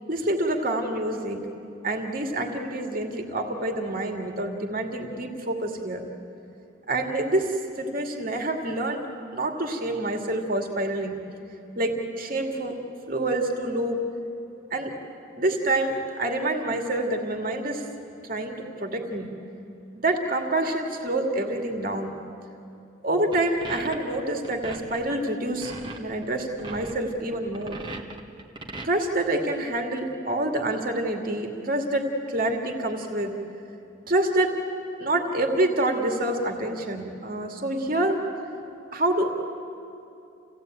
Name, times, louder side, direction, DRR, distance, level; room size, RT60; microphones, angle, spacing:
voice 1, 0.1-1.4 1.8-6.0 6.9-9.0 9.3-11.2 11.8-12.8 13.1-14.0 14.7-14.9 15.4-17.8 18.2-19.3 20.0-22.1 23.0-25.7 26.0-27.8 28.8-33.4 34.1-34.5 35.0-38.2 38.9-39.3, right 1 dB, 45° right, 3 dB, 2.4 m, -27 dB
sound 1, 23.3-28.9, right 2 dB, 25° right, 1.6 m, -38 dB
28.5 x 17.0 x 9.1 m, 2.8 s
head